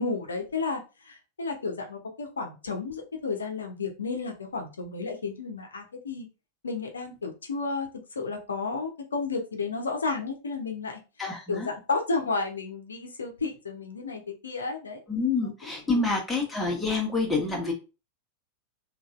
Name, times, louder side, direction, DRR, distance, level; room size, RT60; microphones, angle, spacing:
voice 1, 0.0-6.3 6.6-7.9 8.2-11.0 11.5-15.0 15.4-15.5, left 4 dB, 70° left, 3 dB, 0.7 m, -32 dB
voice 2, 11.2-11.7 15.1-17.7, left 3 dB, 5° left, -1 dB, 1.1 m, -27 dB
3.8 x 2.6 x 2.5 m, 0.30 s
figure-of-eight pair, 90°, 0 cm